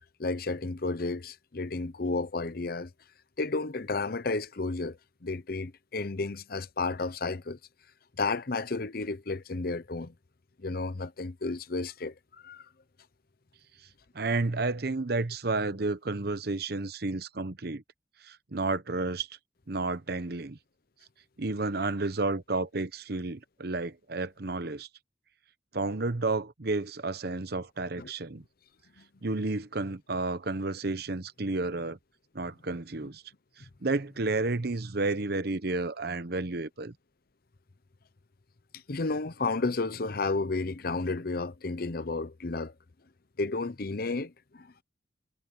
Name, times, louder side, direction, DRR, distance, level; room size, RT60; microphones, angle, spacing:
voice 1, 0.2-2.9 3.4-7.6 8.2-10.1 10.6-12.7 28.0-28.1 29.0-29.1 38.7-42.7 43.4-44.8, left 3 dB, 55° left, 0.8 m, -32 dB
voice 2, 14.1-17.8 18.2-19.3 19.7-20.6 21.4-24.9 25.7-28.4 29.2-32.0 32.3-33.2 33.6-36.9, right 3 dB, 60° right, 0.9 m, -31 dB
head